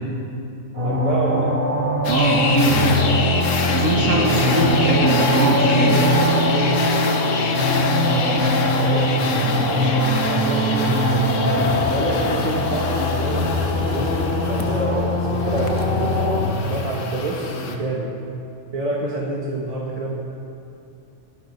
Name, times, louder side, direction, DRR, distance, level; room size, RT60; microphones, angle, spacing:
sound 1, 0.7-16.4, left 1 dB, 55° right, 4.1 m, -21 dB
voice 1, 0.8-1.5 4.3-7.6 8.7-9.8 10.3-11.3 11.9-16.2 16.6-18.1 18.7-20.1, right 2 dB, 30° right, -2 dB, 1.2 m, -28 dB
sound 2, 2.0-17.8, left 4 dB, 80° left, 1.3 m, -28 dB
voice 2, 2.1-2.7 3.7-6.0, right 2 dB, 85° right, -2 dB, 1.6 m, -21 dB
23.0 x 10.5 x 3.1 m, 2.7 s
omnidirectional pair, 1.3 m